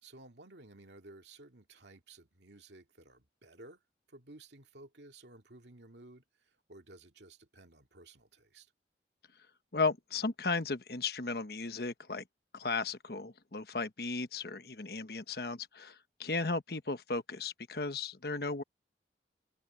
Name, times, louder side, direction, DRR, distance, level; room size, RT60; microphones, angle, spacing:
voice 1, 0.0-3.8 4.1-8.7, right 2 dB, 80° right, 2.3 m, -55 dB
voice 2, 9.7-12.2 12.5-18.6, left 3 dB, 60° left, 1.2 m, -35 dB
head